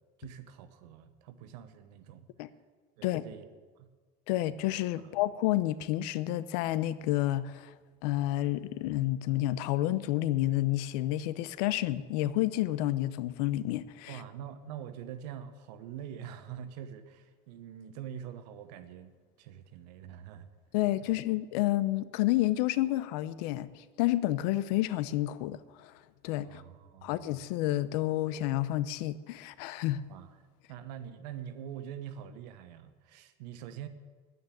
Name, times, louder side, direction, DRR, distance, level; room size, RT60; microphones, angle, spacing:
voice 1, 0.2-2.3 3.0-3.5 3.8-3.9 5.0-5.2 14.1-20.5 21.0-21.2 26.4-27.2 30.1-33.9, right 9 dB, 85° right, 10 dB, 1.0 m, -45 dB
voice 2, 4.3-7.7 8.0-14.1 20.7-25.9 26.2-26.6 27.0-30.1, left 15 dB, 75° left, 16 dB, 0.7 m, -30 dB
9.5 x 9.4 x 8.5 m, 1.4 s
cardioid pair, 160°, 21 cm